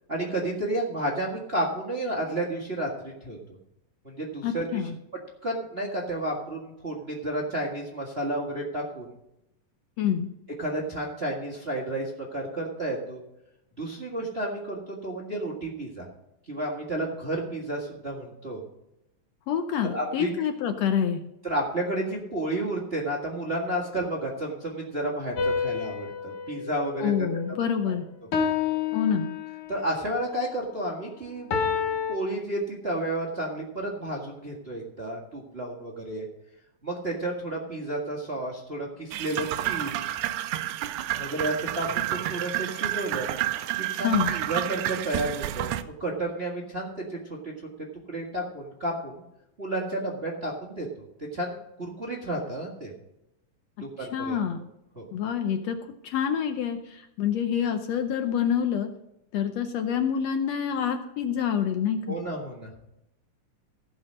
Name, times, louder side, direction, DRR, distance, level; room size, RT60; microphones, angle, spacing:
voice 1, 0.1-3.4 4.0-4.8 5.4-9.1 10.6-13.2 13.8-16.1 16.5-18.6 19.8-20.3 21.4-27.3 27.8-28.0 29.7-31.5 32.1-36.3 36.8-40.1 41.1-43.3 43.8-47.5 48.1-49.2 49.6-50.9 51.2-52.9 53.8-54.4 54.9-55.0 62.1-62.7, right 1 dB, 25° right, -2 dB, 1.3 m, -31 dB
voice 2, 4.4-4.9 10.0-10.3 19.5-21.2 27.0-28.0 28.9-29.3 44.0-44.4 54.0-54.6 55.1-55.8 56.0-58.9 59.3-62.2, left 8 dB, 75° left, 6 dB, 1.5 m, -27 dB
sound 1, 25.4-27.8 28.3-29.9 31.5-32.2, left 6 dB, 60° left, 1.6 m, -29 dB
sound 2, 39.1-45.8, right 13 dB, 75° right, 1.9 m, -30 dB
16.5 x 5.5 x 6.3 m, 0.85 s
omnidirectional pair, 3.7 m